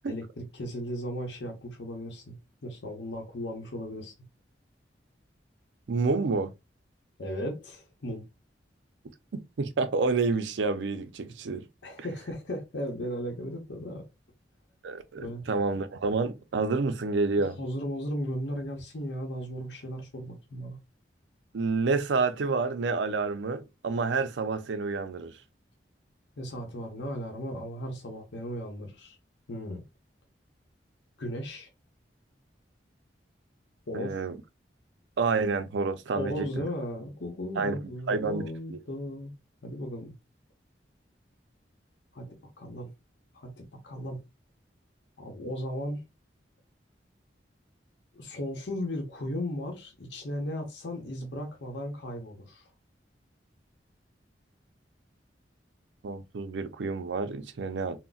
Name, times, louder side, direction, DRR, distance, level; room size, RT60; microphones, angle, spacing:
voice 1, 0.1-2.4 2.6-4.1 7.2-8.2 11.8-14.0 15.2-15.4 17.6-20.8 26.4-29.2 29.5-29.8 31.2-31.7 33.9-34.2 36.2-39.3 39.6-40.1 42.1-42.9 43.3-44.2 45.2-46.0 48.1-52.7, equal, 85° left, 0.8 m, -36 dB
voice 2, 5.9-6.5 9.6-11.6 14.8-17.6 21.5-25.3 33.9-34.4 35.2-36.7 37.6-37.8 38.1-38.4 38.7-38.8 56.0-58.0, right 4 dB, 85° right, 0.5 m, -28 dB
3.8 x 2.1 x 2.3 m
head